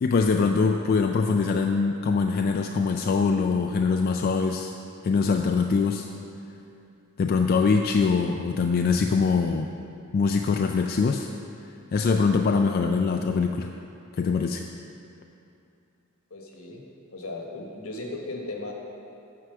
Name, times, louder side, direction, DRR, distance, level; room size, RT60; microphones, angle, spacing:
voice 1, 0.0-4.7 5.0-6.1 7.2-9.7 10.1-11.3 11.9-13.7 14.2-14.6, left 4 dB, 45° left, 4 dB, 0.3 m, -23 dB
voice 2, 16.3-16.8 17.1-18.7, left 2 dB, 75° left, 0 dB, 1.3 m, -36 dB
9.4 x 4.7 x 6.8 m, 2.6 s
head